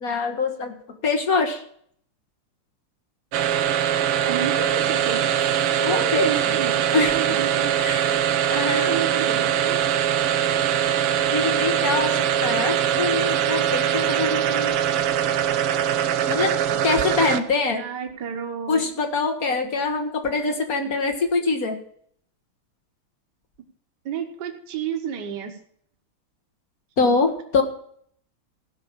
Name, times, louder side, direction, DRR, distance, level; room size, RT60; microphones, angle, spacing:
voice 1, 0.0-1.6 5.8-6.6 6.9-7.4 7.8-9.0 11.3-14.8 16.3-17.9 18.7-21.8 27.0-27.6, left 4 dB, 45° left, 5 dB, 1.9 m, -24 dB
sound 1, 3.3-17.6, right 10 dB, 85° right, 1.8 m, -22 dB
voice 2, 4.2-5.2 5.8-7.7 8.6-9.8 17.7-18.8 24.1-25.6, right 7 dB, 55° right, 3 dB, 1.9 m, -31 dB
16.0 x 6.0 x 7.2 m, 0.63 s
omnidirectional pair, 2.4 m